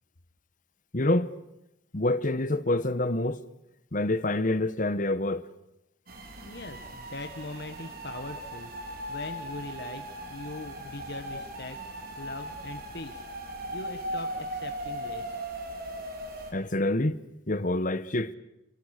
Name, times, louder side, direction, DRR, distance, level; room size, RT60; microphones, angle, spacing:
voice 1, 0.9-1.3 1.9-3.4 3.9-5.5 16.5-17.2 17.5-18.3, left 2 dB, 45° left, 1.1 m, -26 dB
sound 1, 6.1-16.5, right 1 dB, 50° right, 4.0 m, -38 dB
voice 2, 6.4-8.7 9.1-11.8 12.2-13.2 13.7-15.5, left 2 dB, 60° left, 1.6 m, -41 dB
28.5 x 24.5 x 6.7 m
head